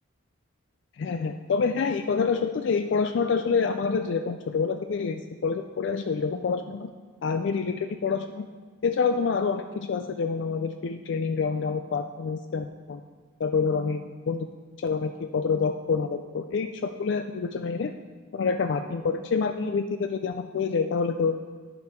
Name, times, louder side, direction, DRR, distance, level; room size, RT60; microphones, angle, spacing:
voice 1, 1.0-6.9 7.2-8.4 8.8-13.0 13.4-14.5 14.8-17.9 18.3-21.4, left 5 dB, 60° left, 7 dB, 0.3 m, -27 dB
11.0 x 5.2 x 4.6 m, 1.5 s
head